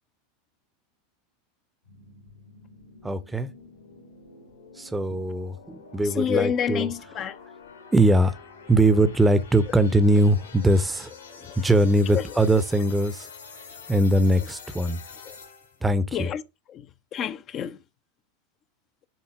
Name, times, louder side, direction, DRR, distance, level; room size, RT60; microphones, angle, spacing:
sound 1, 1.8-15.9, left 5 dB, 75° left, 1.9 m, -47 dB
voice 1, 3.0-3.5 4.8-6.9 7.9-8.4 8.7-11.1 11.6-13.3 13.9-15.0 15.8-16.3, right 1 dB, 10° right, 0.8 m, -21 dB
voice 2, 6.0-7.4 11.3-11.7 12.1-12.4 15.2-15.4 16.1-16.4 16.7-17.8, left 8 dB, 35° left, 0.6 m, -29 dB
7.5 x 4.2 x 5.8 m
figure-of-eight pair, 85°, 0 cm